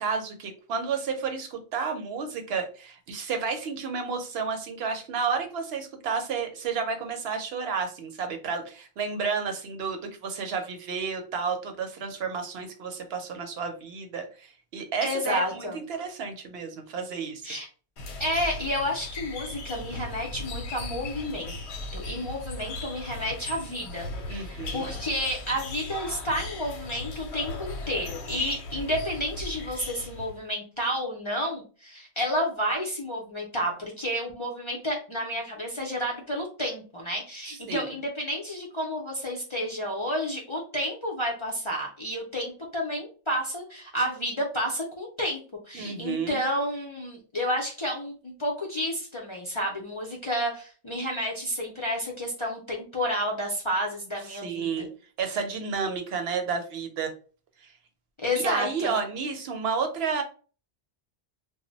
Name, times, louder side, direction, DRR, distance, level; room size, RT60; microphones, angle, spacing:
voice 1, 0.0-14.5 14.7-17.4 24.3-24.8 37.5-37.9 45.7-46.4 54.4-54.9 55.2-57.1 58.4-60.2, right 5 dB, 75° right, 5 dB, 0.8 m, -31 dB
voice 2, 15.0-15.8 17.4-17.7 18.2-21.5 21.9-45.4 45.7-54.9 58.2-58.9, equal, 40° left, -2 dB, 0.5 m, -31 dB
sound 1, 18.0-30.4, left 2 dB, 85° left, 0.9 m, -37 dB
2.1 x 2.0 x 3.8 m, 0.38 s
omnidirectional pair, 1.1 m